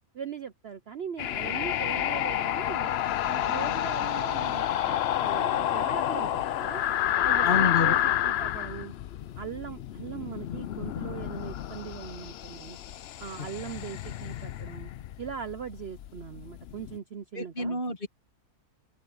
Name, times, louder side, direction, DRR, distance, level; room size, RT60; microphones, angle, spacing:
voice 1, 0.1-2.9 3.3-6.8 7.2-8.9 9.4-12.8 13.2-14.9 15.2-17.8, right 7 dB, 55° right, 0.7 m, -40 dB
sound 1, 1.2-17.0, left 11 dB, 70° left, 0.6 m, -29 dB
sound 2, 6.5-9.3, left 5 dB, 90° left, 2.5 m, -51 dB
voice 2, 7.4-8.0 17.3-18.1, left 4 dB, 35° left, 1.5 m, -28 dB
open air
omnidirectional pair, 1.7 m